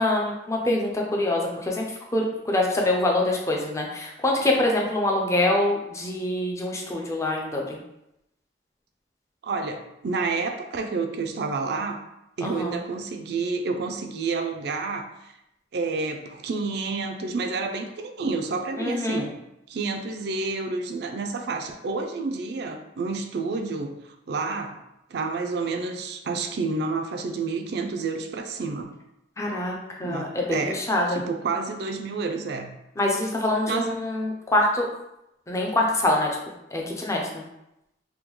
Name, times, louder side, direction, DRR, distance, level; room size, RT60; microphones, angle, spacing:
voice 1, 0.0-1.9 2.1-7.6 12.4-12.7 18.8-19.3 29.4-30.6 30.9-31.2 33.0-34.9 35.5-36.3 36.7-37.4, left 1 dB, 15° left, -1 dB, 0.5 m, -25 dB
voice 2, 9.4-12.0 12.4-15.3 15.7-19.4 19.7-24.0 24.3-24.8 25.1-28.9 30.0-32.8 33.7-34.0, right 4 dB, 65° right, 6 dB, 0.4 m, -29 dB
3.5 x 2.2 x 3.0 m, 0.86 s
head